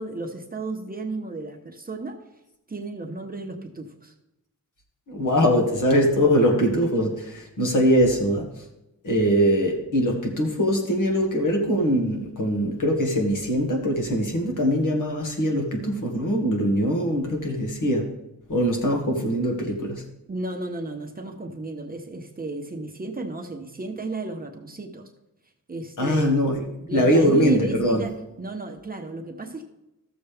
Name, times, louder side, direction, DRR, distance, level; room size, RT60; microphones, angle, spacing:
voice 1, 0.0-2.2 2.7-4.1 20.3-25.1 25.7-26.5 26.8-29.7, right 2 dB, 25° right, 3 dB, 1.0 m, -33 dB
voice 2, 5.1-8.5 9.0-18.1 18.5-20.0 26.0-28.0, equal, 60° left, 2 dB, 2.0 m, -22 dB
14.0 x 6.9 x 3.4 m, 0.91 s
wide cardioid pair, 130°, 35 cm